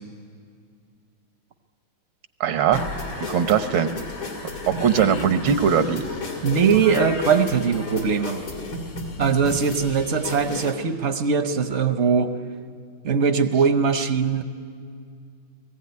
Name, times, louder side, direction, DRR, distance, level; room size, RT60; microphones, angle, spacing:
voice 1, 2.4-2.8 3.3-3.9 4.7-6.1, right 8 dB, 90° right, 9 dB, 1.8 m, -20 dB
sound 1, 2.7-10.7, left 2 dB, 85° left, 3.4 m, -33 dB
voice 2, 6.4-8.4 9.2-12.3 13.0-14.4, right 6 dB, 55° right, 8 dB, 0.8 m, -21 dB
21.0 x 15.5 x 9.5 m, 2.2 s
omnidirectional pair, 2.1 m